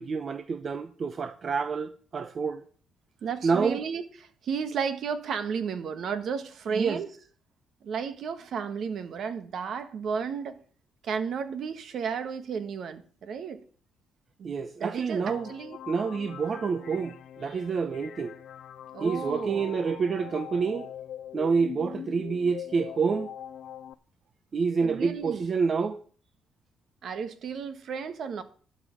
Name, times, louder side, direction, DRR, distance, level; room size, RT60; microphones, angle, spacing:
voice 1, 0.0-2.6 3.4-3.8 6.7-7.0 14.4-15.5 15.9-18.3 19.0-20.9 21.3-23.3 24.5-26.0, right 5 dB, 45° right, 0.8 m, -28 dB
voice 2, 3.2-7.1 7.8-10.6 11.0-13.6 14.4-15.8 18.9-19.8 24.8-25.5 27.0-28.4, right 6 dB, 65° right, 1.4 m, -33 dB
sound 1, 15.2-23.9, left 10 dB, 65° left, 0.6 m, -42 dB
12.0 x 5.3 x 8.9 m
cardioid pair, 90°, 0 cm